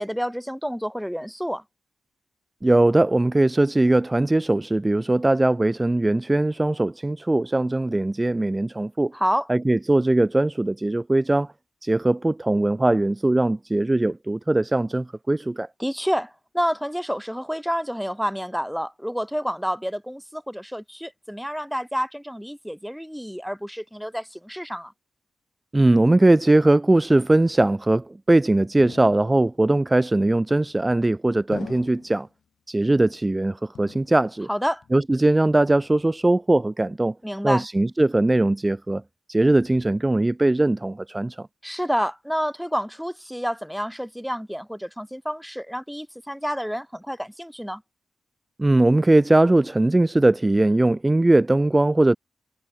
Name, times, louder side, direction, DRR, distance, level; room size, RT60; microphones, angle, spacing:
voice 1, 0.0-1.6 9.1-9.5 15.8-24.9 34.5-34.8 37.2-37.7 41.6-47.8, equal, ahead, 1.6 m, -29 dB
voice 2, 2.6-9.1 9.5-11.5 11.8-15.7 25.7-32.3 32.7-34.5 34.9-37.1 37.4-39.0 39.3-41.5 48.6-52.2, right 2 dB, 20° right, 1.0 m, -20 dB
sound 1, 28.8-29.6 30.5-31.0 31.5-32.3 32.8-33.4 33.7-34.5 34.8-35.3 35.7-36.3, left 8 dB, 80° left, 3.3 m, -44 dB
cardioid pair, 85°, 0 cm